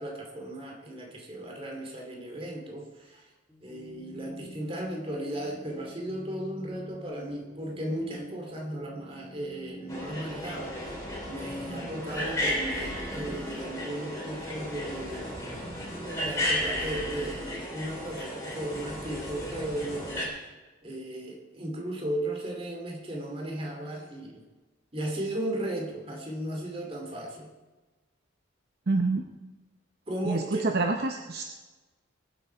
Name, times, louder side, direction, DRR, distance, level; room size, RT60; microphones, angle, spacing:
voice 1, 0.0-3.3 3.6-10.8 11.3-15.4 16.0-20.4 20.8-24.4 24.9-27.5 30.1-30.7, right 1 dB, 30° right, 1 dB, 2.5 m, -36 dB
sound 1, 3.5-13.4, equal, ahead, 1.6 m, -46 dB
sound 2, 9.9-20.3, equal, 15° left, 3.1 m, -34 dB
voice 2, 28.9-29.2 30.3-31.4, right 3 dB, 50° right, 4 dB, 0.7 m, -27 dB
21.0 x 7.9 x 4.4 m, 1.2 s
head